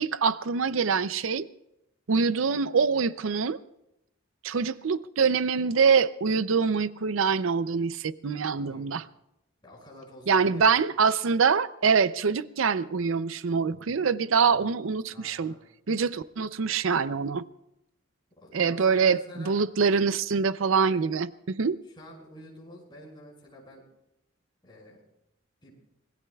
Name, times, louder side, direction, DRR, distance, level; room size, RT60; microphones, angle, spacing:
voice 1, 0.0-1.5 2.1-3.6 4.4-9.0 10.3-15.5 15.9-17.4 18.5-19.2 19.5-21.8, right 5 dB, 85° right, 0.5 m, -24 dB
voice 2, 8.6-9.0 9.6-10.8 15.1-15.6 18.4-19.6 21.8-23.9 24.6-25.0 25.6-25.8, left 1 dB, 25° left, 5.8 m, -48 dB
26.0 x 21.5 x 2.3 m
head